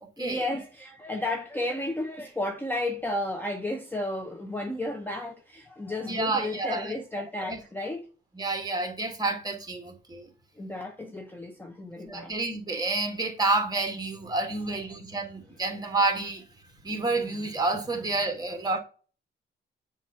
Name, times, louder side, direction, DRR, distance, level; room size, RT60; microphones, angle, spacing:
voice 1, 0.2-8.0 10.6-12.3, left 1 dB, 10° left, 0.7 m, -33 dB
voice 2, 6.0-6.9 7.5-7.6 8.4-10.3 12.0-16.4 16.8-18.8, right 3 dB, 20° right, 1.5 m, -29 dB
7.2 x 2.6 x 5.6 m
cardioid pair, 115°, 21 cm